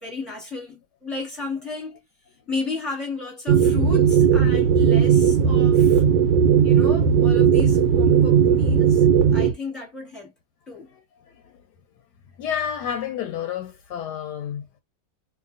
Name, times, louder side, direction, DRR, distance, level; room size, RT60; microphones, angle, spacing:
voice 1, 0.0-2.0 2.5-6.0 6.6-10.3 10.7-10.9, left 3 dB, ahead, 1.3 m, -33 dB
sound 1, 3.5-9.5, right 7 dB, 80° right, 1.3 m, -17 dB
voice 2, 11.3-11.6 12.4-14.7, left 9 dB, 75° left, 1.1 m, -30 dB
3.0 x 2.5 x 2.5 m
omnidirectional pair, 1.9 m